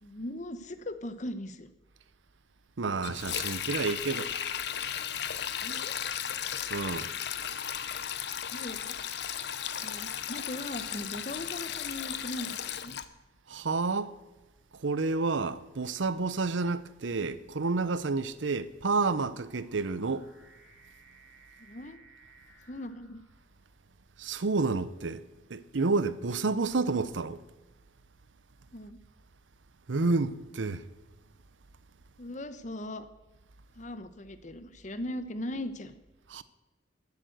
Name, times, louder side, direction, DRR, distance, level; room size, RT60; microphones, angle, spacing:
voice 1, 0.0-1.7 5.6-5.9 8.5-9.0 9.8-13.0 21.6-22.0 22.7-23.2 28.7-29.0 32.2-33.1 33.7-35.9, left 1 dB, 40° left, 1.0 m, -39 dB
voice 2, 2.8-4.5 6.7-7.1 13.5-14.2 14.7-20.3 24.2-25.2 25.5-27.4 29.9-30.9 36.3-36.4, right 3 dB, 85° right, 0.7 m, -30 dB
Sink (filling or washing), 3.0-13.0, left 9 dB, 60° left, 0.8 m, -35 dB
sound 1, 14.6-14.9 15.7-23.9, right 3 dB, 5° right, 3.5 m, -61 dB
13.0 x 8.6 x 7.9 m
head